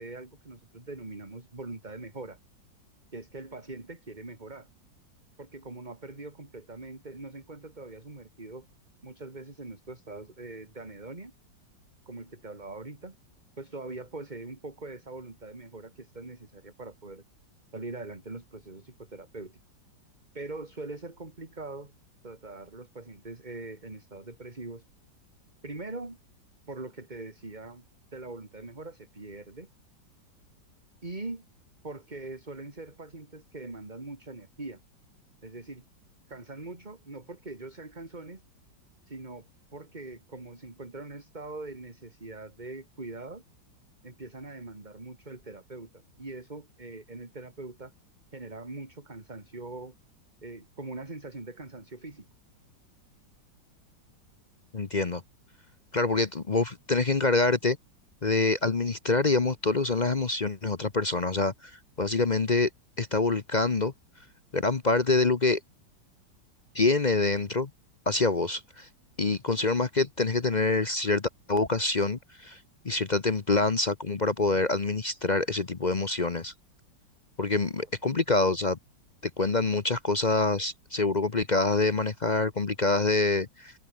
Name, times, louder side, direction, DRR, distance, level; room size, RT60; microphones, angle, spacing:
voice 1, 0.0-2.4 3.1-4.7 5.4-8.7 9.0-11.3 12.1-13.2 13.6-17.2 17.7-19.6 20.3-21.9 22.2-24.8 25.6-26.2 26.7-27.8 28.1-29.7 31.0-31.4 31.8-34.8 35.4-35.8 36.3-38.4 39.1-43.4 44.0-47.9 48.3-49.9 50.4-52.3 77.8-77.9, right 2 dB, 20° right, 3.2 m, -42 dB
voice 2, 54.7-55.2 55.9-57.8 58.2-61.7 62.0-62.7 63.0-63.9 64.5-65.6 66.7-67.7 68.1-68.9 69.2-72.6 72.8-76.5 77.4-78.8 79.4-83.7, left 3 dB, 35° left, 0.7 m, -26 dB
omnidirectional pair, 2.0 m